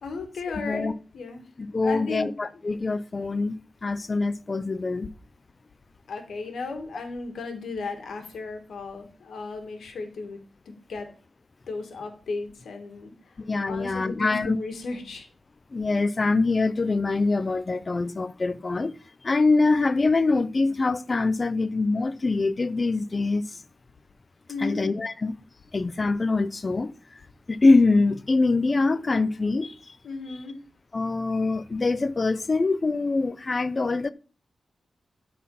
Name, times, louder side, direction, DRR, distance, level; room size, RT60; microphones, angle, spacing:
voice 1, 0.0-2.3 6.1-10.4 10.7-11.1 11.7-15.3 24.5-24.9 30.0-30.6, left 3 dB, 85° left, 1.9 m, -35 dB
voice 2, 1.7-5.1 13.5-14.6 15.7-19.0 19.2-23.6 24.6-25.4 25.7-27.2 27.5-30.0 30.9-34.1, left 3 dB, 30° left, 0.5 m, -24 dB
12.5 x 4.3 x 5.5 m
wide cardioid pair, 145°, 0 cm